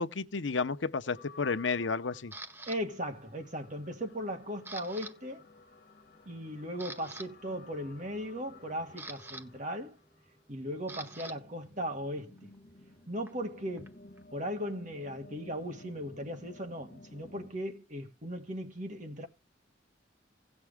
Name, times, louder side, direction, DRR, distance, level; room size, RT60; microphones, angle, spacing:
voice 1, 0.0-2.3, left 4 dB, 85° left, 0.8 m, -32 dB
sound 1, 1.1-17.5, left 3 dB, 45° left, 1.7 m, -55 dB
Camera, 2.3-2.8 3.4-3.7 4.0-5.1 5.4-5.6 6.1-6.2 6.6-7.3 8.5-11.3 11.6-14.2, right 2 dB, 10° right, 0.8 m, -47 dB
voice 2, 2.7-5.5 6.3-10.0 10.5-12.5 13.1-14.0 14.3-19.3, equal, 40° right, 1.9 m, -38 dB
17.0 x 6.2 x 3.5 m
head